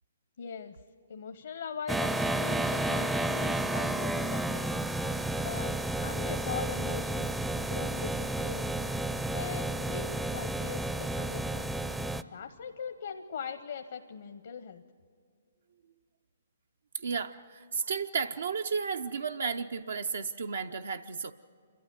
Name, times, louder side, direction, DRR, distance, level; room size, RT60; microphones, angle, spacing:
voice 1, 0.4-0.8 1.1-4.8 5.4-5.7 6.0-8.7 9.3-11.9 12.3-14.8, left 6 dB, 65° left, 7 dB, 0.9 m, -41 dB
sound 1, 1.9-12.2, right 1 dB, 5° right, 0.5 m, -31 dB
voice 2, 16.9-21.3, right 5 dB, 80° right, 6 dB, 0.6 m, -33 dB
27.5 x 13.0 x 9.5 m, 2.2 s
hypercardioid pair, 140°, 0 cm